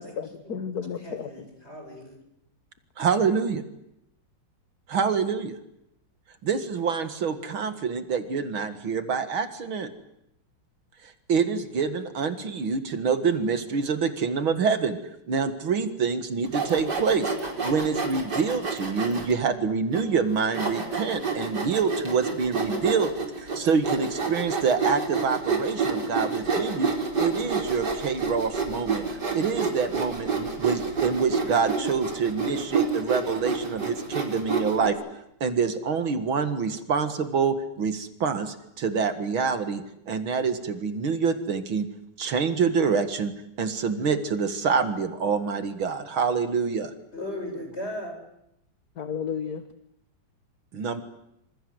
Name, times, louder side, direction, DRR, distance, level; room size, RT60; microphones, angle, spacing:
voice 1, 0.0-1.5 49.0-49.7, left 7 dB, 50° left, 10 dB, 1.7 m, -33 dB
voice 2, 0.9-2.2 47.1-48.1, left 1 dB, 30° left, 3 dB, 8.2 m, -37 dB
voice 3, 3.0-3.6 4.9-5.6 6.4-9.9 11.0-15.0 15.3-26.9 27.2-35.0 35.4-41.9 42.2-43.3 43.6-46.9 50.7-51.0, right 5 dB, 70° right, 9 dB, 2.6 m, -26 dB
Sawing, 16.4-19.3 19.9-20.0 20.5-34.9, right 4 dB, 50° right, 5.2 m, -29 dB
27.0 x 27.0 x 8.0 m, 0.80 s
omnidirectional pair, 2.3 m